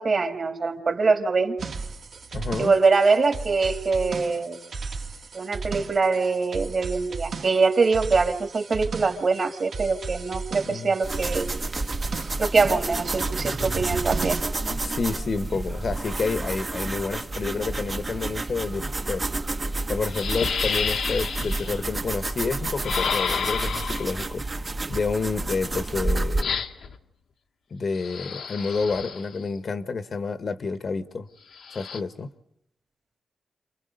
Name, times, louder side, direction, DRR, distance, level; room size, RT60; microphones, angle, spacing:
voice 1, 0.0-1.5 2.6-4.6 5.3-11.5 12.4-14.4, right 4 dB, 45° right, 2.6 m, -23 dB
sound 1, 1.6-14.4, right 4 dB, 65° right, 2.2 m, -35 dB
voice 2, 2.3-2.7 10.6-10.9 14.7-19.2 19.9-26.5 27.7-31.3 31.7-32.3, left 4 dB, 50° left, 1.3 m, -29 dB
sound 2, 11.0-26.4, right 2 dB, 30° right, 1.1 m, -30 dB
sound 3, 19.5-19.6 20.1-21.8 22.8-24.2 26.4-27.0 27.9-29.4 31.5-32.0, left 6 dB, 75° left, 1.4 m, -30 dB
30.0 x 28.0 x 5.4 m
cardioid pair, 90°, 0 cm